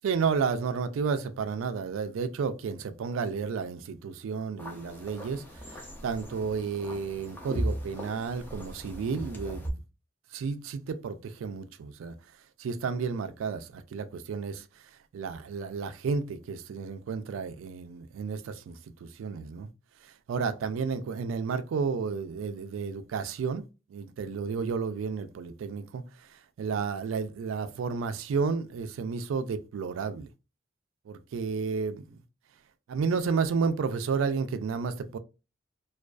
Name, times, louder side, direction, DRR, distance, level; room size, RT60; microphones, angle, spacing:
voice 1, 0.0-5.4 5.7-9.8 10.3-12.1 12.6-14.6 15.1-19.7 20.3-23.7 23.9-26.0 26.3-30.3 31.1-32.2 32.9-35.2, right 5 dB, 90° right, 0.3 m, -32 dB
sound 1, 4.6-9.7, equal, 10° left, 0.4 m, -38 dB
2.4 x 2.3 x 2.2 m
head